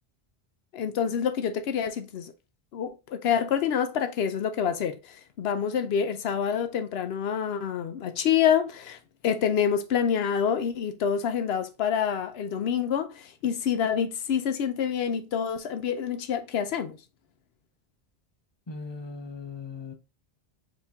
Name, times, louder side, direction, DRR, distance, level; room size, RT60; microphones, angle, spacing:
voice 1, 0.7-2.3 2.7-9.0 9.2-17.0, left 8 dB, 85° left, 0.9 m, -27 dB
voice 2, 18.7-19.9, left 4 dB, 30° left, 0.8 m, -38 dB
4.5 x 3.0 x 3.4 m
omnidirectional pair, 1.0 m